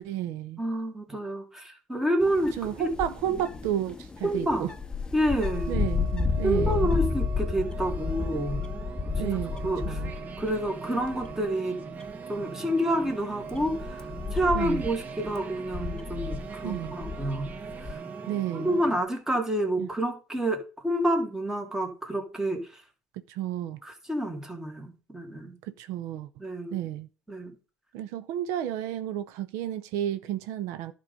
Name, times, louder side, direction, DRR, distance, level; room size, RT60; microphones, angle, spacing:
voice 1, 0.0-0.6 2.6-4.7 5.7-6.9 9.2-9.6 9.9-10.1 14.5-14.9 16.6-16.9 18.3-18.8 19.8-19.9 23.3-23.8 25.6-26.3 26.7-27.1 27.9-30.9, right 11 dB, 80° right, 0.6 m, -32 dB
voice 2, 0.6-2.9 4.2-4.7 5.1-5.8 6.4-8.6 9.1-9.4 9.6-10.0 10.4-11.8 12.3-17.5 17.8-18.0 18.5-22.8 23.8-25.6 26.4-26.8 27.3-27.5, right 1 dB, 10° right, 1.9 m, -29 dB
sound 1, 2.2-10.7 11.0-11.5 12.0-12.1 13.0-17.9, left 5 dB, 15° left, 0.7 m, -32 dB
sound 2, 5.4-19.0, right 5 dB, 35° right, 1.2 m, -40 dB
11.0 x 3.8 x 5.2 m
cardioid pair, 115°, 5 cm